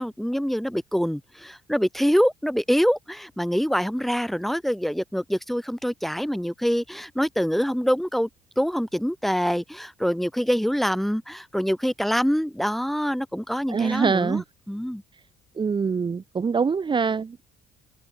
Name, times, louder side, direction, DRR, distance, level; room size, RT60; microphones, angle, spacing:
voice 1, 0.0-8.3 8.6-15.0, equal, ahead, 3.0 m, -25 dB
voice 2, 13.7-14.4 15.6-17.4, right 5 dB, 30° right, 1.8 m, -24 dB
supercardioid pair, 80°, 15 cm